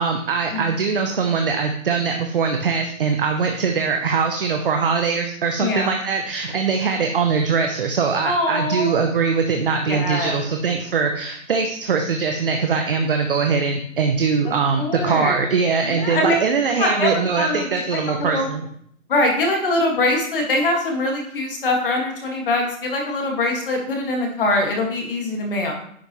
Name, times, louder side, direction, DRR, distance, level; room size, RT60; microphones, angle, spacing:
voice 1, 0.0-18.7, right 5 dB, 40° right, 4 dB, 0.7 m, -22 dB
voice 2, 5.6-5.9 8.2-9.0 9.8-10.4 14.8-15.4 15.9-16.4 16.8-17.7 18.1-18.5 19.1-25.7, left 2 dB, 40° left, 1 dB, 1.9 m, -23 dB
10.0 x 5.6 x 3.1 m, 0.66 s
hypercardioid pair, 170°, 41 cm